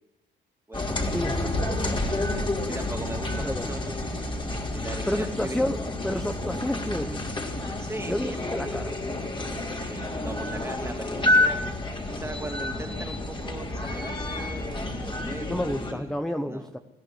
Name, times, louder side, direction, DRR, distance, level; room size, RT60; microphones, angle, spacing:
sound 1, 0.7-15.9, left 2 dB, 25° left, 3.7 m, -29 dB
voice 1, 1.1-1.5 3.4-3.7 5.1-7.3 8.1-9.0 15.5-16.8, left 1 dB, 5° left, 8 dB, 1.1 m, -30 dB
voice 2, 2.7-4.2 4.7-5.6 7.8-8.6 9.9-11.6 12.2-16.1 16.5-16.7, right 1 dB, 10° right, 4 dB, 3.0 m, -38 dB
20.5 x 16.0 x 8.1 m, 0.96 s
cardioid pair, 90°, 20 cm